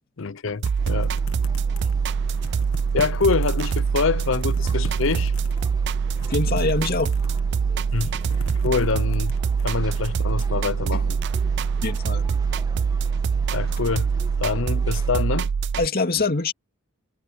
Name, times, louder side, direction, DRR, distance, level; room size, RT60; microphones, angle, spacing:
voice 1, 0.2-1.1 2.9-5.3 7.9-8.1 8.6-9.3 9.6-11.2 13.5-14.1 14.4-15.5, left 5 dB, 65° left, 0.6 m, -25 dB
sound 1, 0.6-2.0 2.3-3.8 4.2-5.6 6.1-7.5 7.8-9.6, left 2 dB, 85° left, 1.7 m, -39 dB
sound 2, 0.6-15.9, right 6 dB, 55° right, 0.4 m, -24 dB
sound 3, 0.8-15.1, right 1 dB, 20° right, 1.2 m, -43 dB
voice 2, 6.3-7.2 10.9-11.0 11.8-12.3 12.8-12.9 15.8-16.5, left 3 dB, 45° left, 2.4 m, -24 dB
head